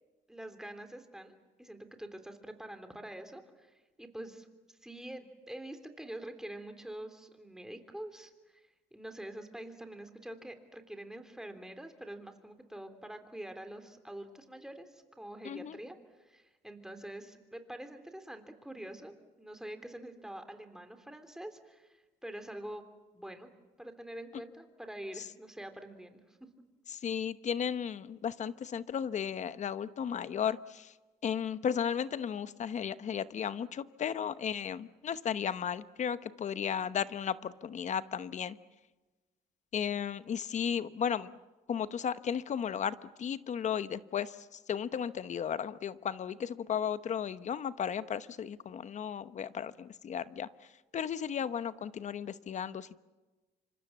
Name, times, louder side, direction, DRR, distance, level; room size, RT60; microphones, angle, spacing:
voice 1, 0.3-22.8 23.1-23.5 23.8-26.4, right 1 dB, 5° right, 6 dB, 3.4 m, -46 dB
voice 2, 15.4-15.8 25.2-25.3 26.9-30.9 31.2-38.6 39.7-41.3 41.7-53.0, left 8 dB, 45° left, 14 dB, 1.0 m, -35 dB
28.0 x 25.5 x 7.4 m, 1.2 s
cardioid pair, 110°, 17 cm